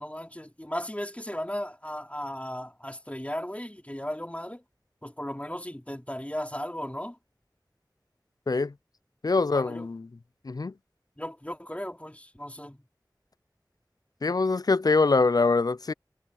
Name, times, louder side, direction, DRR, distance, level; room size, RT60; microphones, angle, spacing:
voice 1, 0.0-4.6 5.0-7.2 9.5-9.9 11.2-12.8, equal, 20° left, 3.1 m, -36 dB
voice 2, 9.2-10.1 10.4-10.7 14.2-15.9, left 3 dB, 55° left, 0.3 m, -24 dB
wide cardioid pair, 40°, 8 cm